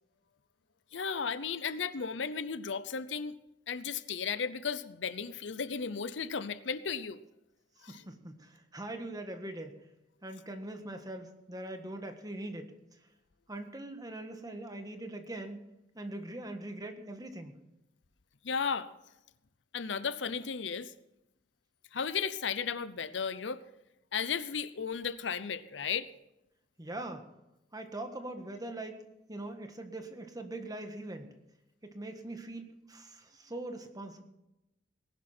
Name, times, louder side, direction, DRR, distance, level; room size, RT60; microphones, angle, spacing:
voice 1, 0.9-3.4 3.7-7.2 7.8-8.0 18.4-18.9 19.7-20.9 21.9-23.6 24.1-26.1, left 6 dB, 75° left, 15 dB, 0.7 m, -35 dB
voice 2, 7.9-9.8 10.2-12.7 13.5-15.6 15.9-17.6 26.8-27.3 27.7-29.0 29.3-31.3 31.8-34.2, right 1 dB, 20° right, 6 dB, 1.5 m, -42 dB
19.0 x 11.5 x 4.4 m, 0.89 s
head